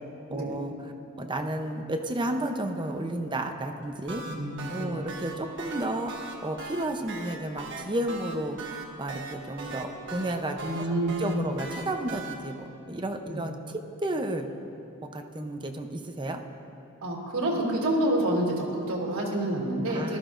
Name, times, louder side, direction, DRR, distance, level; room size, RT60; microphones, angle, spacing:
voice 1, 0.3-0.9 1.2-4.2 4.7-10.9 11.2-14.5 15.1-16.4 19.9-20.2, right 1 dB, 20° right, 4 dB, 0.7 m, -32 dB
sound 1, 3.8-12.3, right 3 dB, 60° right, 1.3 m, -39 dB
voice 2, 4.2-5.0 10.6-11.2 13.3-13.4 17.0-20.2, right 1 dB, 80° right, -3 dB, 2.7 m, -28 dB
19.0 x 13.0 x 2.6 m, 2.7 s
head